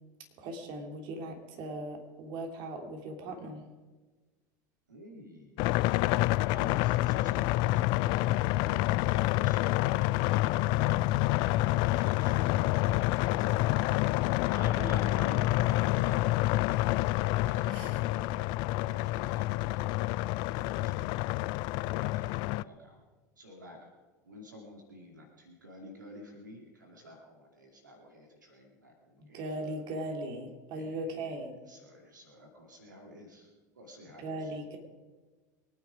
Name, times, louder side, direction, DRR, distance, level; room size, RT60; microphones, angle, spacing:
voice 1, 0.4-3.6 14.8-15.0 17.7-18.0 29.2-31.5 34.2-34.8, right 1 dB, 50° right, 4 dB, 3.0 m, -39 dB
voice 2, 4.9-5.7 6.5-7.8 14.5-15.7 17.4-18.5 18.8-20.1 21.7-23.0 23.4-23.8 24.2-29.8 30.7-31.1 31.7-33.5 33.8-34.5, left 1 dB, 85° right, 1 dB, 2.4 m, -51 dB
sound 1, 5.6-22.6, left 18 dB, 50° left, 0.4 m, -28 dB
23.5 x 9.5 x 4.9 m, 1.3 s
hypercardioid pair, 80°, 10 cm